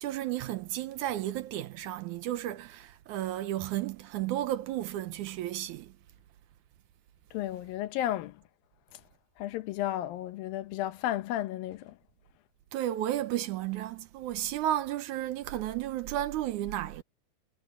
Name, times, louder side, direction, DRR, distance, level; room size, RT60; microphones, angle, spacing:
voice 1, 0.0-5.9 12.7-17.0, right 13 dB, 75° right, 1.9 m, -33 dB
voice 2, 7.3-8.3 9.4-11.9, left 13 dB, 75° left, 2.6 m, -33 dB
omnidirectional pair, 4.2 m